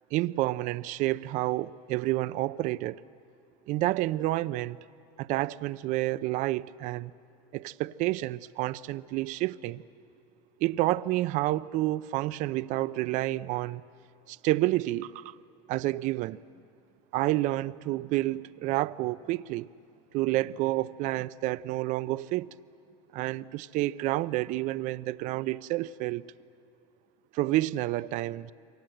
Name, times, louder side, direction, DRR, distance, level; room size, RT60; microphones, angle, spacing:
voice 1, 0.1-3.0 3.7-4.8 5.2-7.1 7.5-9.8 10.6-13.8 14.3-15.4 15.7-16.4 17.1-19.7 20.1-22.5 23.1-26.3 27.3-28.5, right 17 dB, 60° right, 0.6 m, -29 dB
28.0 x 24.0 x 7.8 m
cardioid pair, 130°, 15 cm